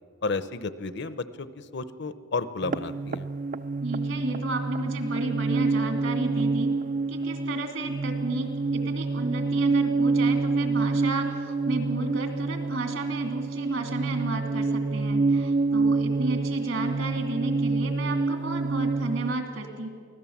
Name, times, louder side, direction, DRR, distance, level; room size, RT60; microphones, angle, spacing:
voice 1, 0.2-3.3, left 3 dB, 50° left, 14 dB, 0.7 m, -32 dB
sound 1, 2.6-19.3, right 3 dB, 35° right, 0.4 m, -27 dB
voice 2, 3.8-6.7 7.1-19.9, right 2 dB, 60° right, 5 dB, 2.5 m, -32 dB
24.0 x 16.5 x 7.3 m, 2.3 s
head